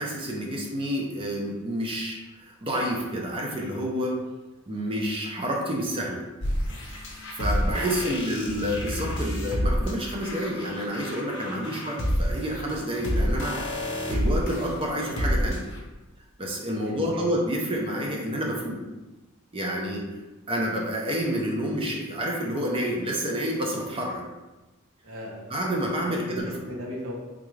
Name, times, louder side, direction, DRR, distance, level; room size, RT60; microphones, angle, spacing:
voice 1, 0.0-4.2 4.7-6.2 7.3-13.6 14.1-15.6 16.4-18.8 19.5-20.0 20.5-24.2 25.5-26.5, equal, 25° right, -1 dB, 0.5 m, -29 dB
sound 1, 6.4-15.8, equal, 60° left, 0.8 m, -28 dB
voice 2, 16.8-17.2 25.0-25.5 26.0-26.4 26.6-27.1, equal, 80° right, -2 dB, 0.8 m, -38 dB
3.7 x 2.4 x 3.1 m, 1.1 s
head